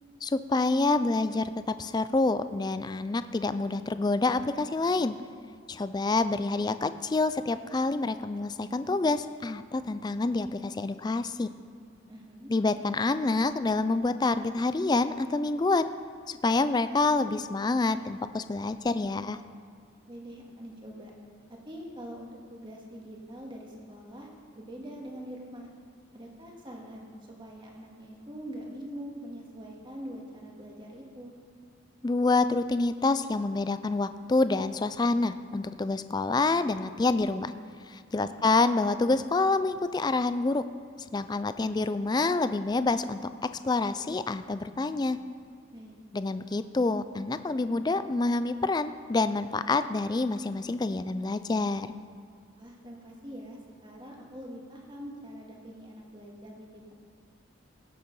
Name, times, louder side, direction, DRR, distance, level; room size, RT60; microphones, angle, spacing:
voice 1, 0.2-1.5 1.8-5.2 5.7-11.5 12.5-15.9 16.3-19.4 32.0-37.5 37.9-40.6 41.1-45.2 46.1-51.9, left 3 dB, 20° left, 12 dB, 0.3 m, -27 dB
voice 2, 12.1-12.5 20.1-21.1 21.5-25.7 26.1-31.3 38.2-38.5 45.7-46.0 52.6-56.9, equal, 25° right, -1 dB, 1.8 m, -44 dB
17.0 x 6.7 x 5.4 m, 2.2 s
head